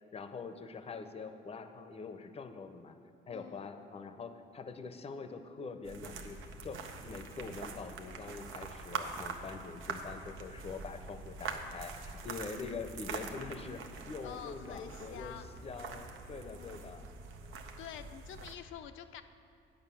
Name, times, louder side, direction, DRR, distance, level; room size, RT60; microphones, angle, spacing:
voice 1, 0.1-2.9 3.3-15.4 15.6-17.1, left 4 dB, 30° left, 8 dB, 0.6 m, -44 dB
voice 2, 3.3-3.7 14.2-15.5 16.4-17.0 17.8-19.2, left 9 dB, 80° left, 8 dB, 0.5 m, -48 dB
sound 1, 5.8-18.6, right 4 dB, 85° right, 0.7 m, -44 dB
9.0 x 5.4 x 7.0 m, 2.5 s
cardioid pair, 90°, 20 cm